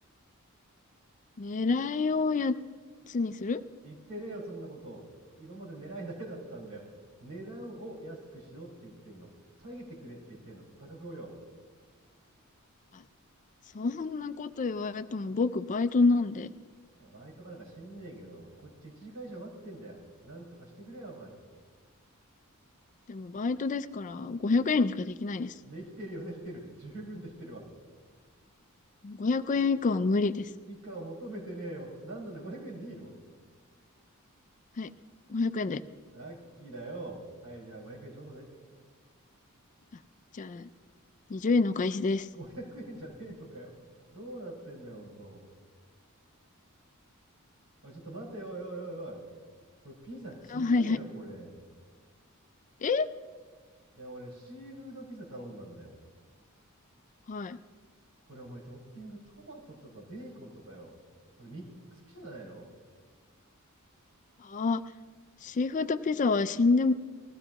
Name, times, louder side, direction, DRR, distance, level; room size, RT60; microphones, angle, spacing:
voice 1, 1.4-2.5 3.1-3.6 12.9-13.0 13.7-16.5 23.1-25.6 29.0-30.5 34.8-34.9 35.3-35.8 40.3-40.7 41.3-42.3 50.5-51.0 52.8-53.1 57.3-57.6 64.4-64.8 65.4-66.9, left 3 dB, 35° left, 12 dB, 0.4 m, -28 dB
voice 2, 3.8-5.0 5.4-6.8 7.2-9.3 9.6-11.3 17.0-20.0 20.2-21.3 25.6-27.6 30.7-33.1 36.1-38.5 42.3-43.7 44.1-45.4 47.8-49.2 49.8-51.5 53.9-55.9 58.3-60.9 61.4-62.7, right 1 dB, 80° right, -4 dB, 5.0 m, -43 dB
20.0 x 15.0 x 3.0 m, 1.5 s
head